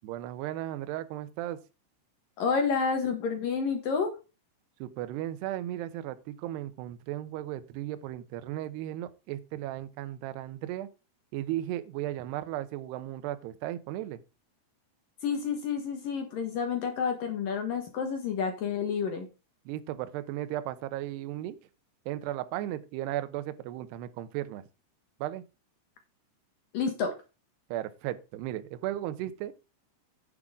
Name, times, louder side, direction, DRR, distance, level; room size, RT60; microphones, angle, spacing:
voice 1, 0.0-1.6 4.8-10.9 11.3-14.2 19.7-21.6 22.1-24.6 25.2-25.4 27.7-29.5, right 13 dB, 80° right, 2.4 m, -35 dB
voice 2, 2.4-4.1 15.2-19.3 26.7-27.1, left 6 dB, 70° left, 2.2 m, -29 dB
10.0 x 8.6 x 3.6 m
omnidirectional pair, 6.0 m